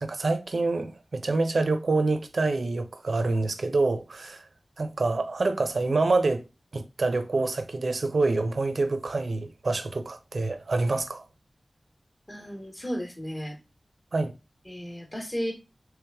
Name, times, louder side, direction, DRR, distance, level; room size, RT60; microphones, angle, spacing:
voice 1, 0.0-4.5 4.8-6.4 6.7-11.2 14.1-14.3, right 3 dB, 80° right, 0.5 m, -26 dB
voice 2, 12.3-13.6 14.7-15.5, equal, 20° left, 1.0 m, -34 dB
3.2 x 3.2 x 3.4 m
wide cardioid pair, 60°, 0 cm